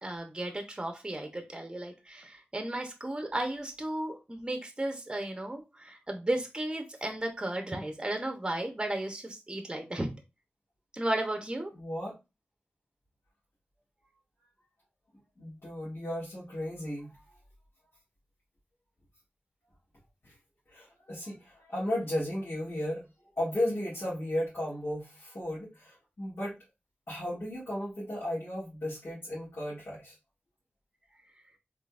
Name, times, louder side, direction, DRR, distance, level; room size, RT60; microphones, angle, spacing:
voice 1, 0.0-10.1 10.9-11.7, right 1 dB, 20° right, 4 dB, 0.8 m, -34 dB
voice 2, 11.8-12.1 15.4-17.1 20.2-20.3 20.7-23.0 23.4-26.6 27.1-30.1, left 1 dB, 70° left, -9 dB, 1.9 m, -35 dB
3.8 x 3.3 x 2.4 m, 0.26 s
wide cardioid pair, 65°, 4 cm